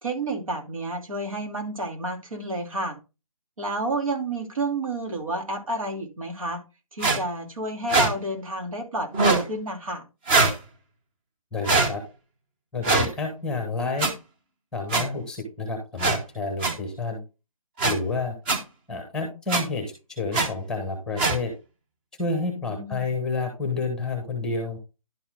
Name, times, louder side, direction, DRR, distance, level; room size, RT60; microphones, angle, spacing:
voice 1, 0.0-3.0 3.6-6.6 6.9-10.0 22.6-23.1, right 2 dB, 70° right, 2 dB, 3.1 m, -30 dB
sound 1, 7.0-7.2 7.9-8.1 9.1-9.4 10.3-10.6 11.6-11.9 12.8-13.1 14.0-14.1 14.9-15.0 16.0-16.2 16.6-16.7 17.8-17.9 18.5-18.6 19.5-19.6 20.3-20.5 21.2-21.4, right 3 dB, 20° right, 1.0 m, -21 dB
voice 2, 11.5-12.0 12.7-14.1 14.7-17.2 17.8-18.3 18.9-19.8 20.2-21.5 22.2-24.8, left 3 dB, 5° left, 4 dB, 1.2 m, -29 dB
11.5 x 4.3 x 3.7 m, 0.28 s
hypercardioid pair, 160°, 18 cm